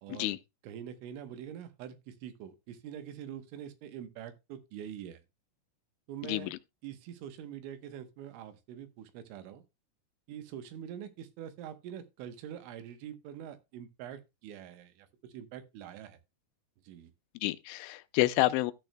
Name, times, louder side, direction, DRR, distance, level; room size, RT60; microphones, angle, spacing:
voice 1, 0.0-0.4 0.6-5.2 6.1-6.5 6.8-9.6 10.3-16.2 16.9-17.1, right 9 dB, 90° right, 3.6 m, -44 dB
voice 2, 6.2-6.6 17.4-18.7, left 17 dB, 90° left, 3.0 m, -29 dB
13.5 x 9.1 x 2.2 m
omnidirectional pair, 5.3 m